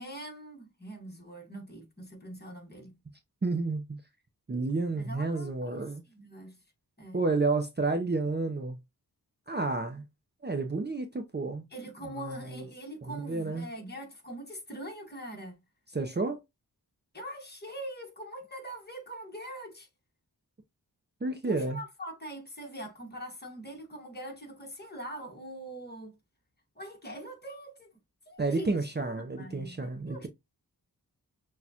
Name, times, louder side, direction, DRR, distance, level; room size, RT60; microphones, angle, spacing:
voice 1, 0.0-3.0 4.9-5.8 6.1-6.6 7.0-7.2 11.7-15.6 17.1-19.9 21.4-26.2 26.7-28.0 28.3-28.8 29.2-30.3, right 1 dB, 25° left, 1.5 m, -43 dB
voice 2, 3.4-4.0 4.5-6.0 7.1-8.8 9.5-10.0 10.4-11.7 12.2-12.4 13.0-13.7 15.9-16.4 21.2-21.8 28.4-30.3, right 3 dB, 25° right, 0.6 m, -30 dB
6.2 x 2.4 x 2.8 m
wide cardioid pair, 105°, 38 cm